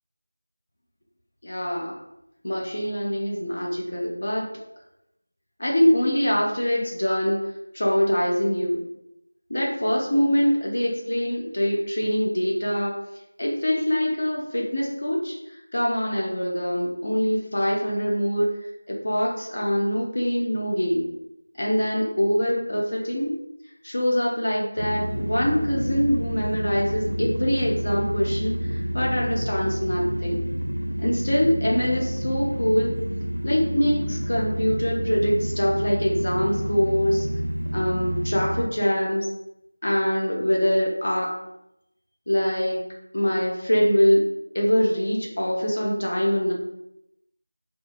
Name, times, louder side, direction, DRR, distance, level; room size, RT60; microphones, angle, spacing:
voice 1, 1.4-2.0 2.4-4.5 5.6-7.4 7.7-8.8 9.5-12.9 13.4-15.4 15.7-18.5 18.9-21.1 21.6-23.3 23.8-30.5 31.0-32.9 33.4-37.3 37.7-39.3 39.8-41.4 42.3-42.8 43.1-44.2 44.5-46.5, equal, 35° left, -2 dB, 0.6 m, -24 dB
sound 1, 24.8-38.7, equal, 80° right, 0.5 m, -29 dB
3.7 x 2.4 x 2.4 m, 0.83 s
figure-of-eight pair, 180°, 0 cm